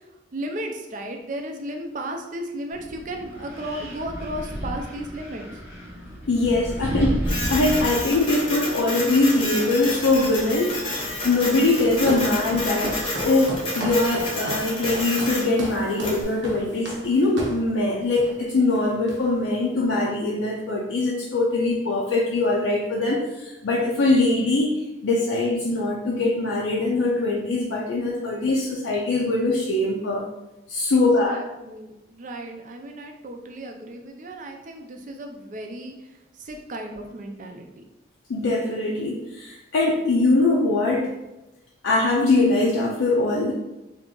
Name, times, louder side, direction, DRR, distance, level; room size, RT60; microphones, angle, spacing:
voice 1, 0.3-5.6 30.9-35.9 36.4-37.9, right 1 dB, 40° right, 3 dB, 0.4 m, -35 dB
Wind, 2.7-12.7, equal, 15° right, 0.8 m, -34 dB
voice 2, 6.3-10.8 11.2-30.2 30.7-31.4 38.3-41.1 41.8-43.5, left 2 dB, 85° left, -3 dB, 0.5 m, -22 dB
Printer, 7.2-16.2, left 1 dB, 30° left, 0.7 m, -30 dB
Walk footsteps, 11.7-17.7 18.2-18.4 18.7-19.5, equal, 70° right, 0.7 m, -35 dB
2.7 x 2.5 x 3.7 m, 0.99 s
head